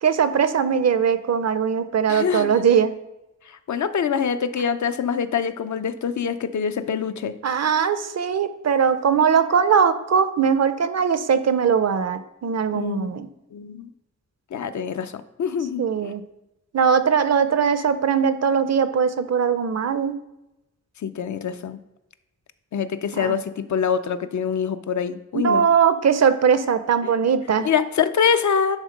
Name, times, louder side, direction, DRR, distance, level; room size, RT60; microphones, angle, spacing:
voice 1, 0.0-2.9 7.4-13.3 15.8-16.2 16.7-20.2 23.1-23.4 25.3-27.7, right 7 dB, 60° right, 12 dB, 0.6 m, -20 dB
voice 2, 2.1-2.5 3.5-7.3 12.7-13.1 13.5-13.9 14.5-16.1 21.0-21.8 22.7-25.6 27.0-27.1 27.6-28.8, left 7 dB, 70° left, 10 dB, 0.6 m, -25 dB
11.0 x 3.6 x 5.1 m, 0.93 s
wide cardioid pair, 140°, 30 cm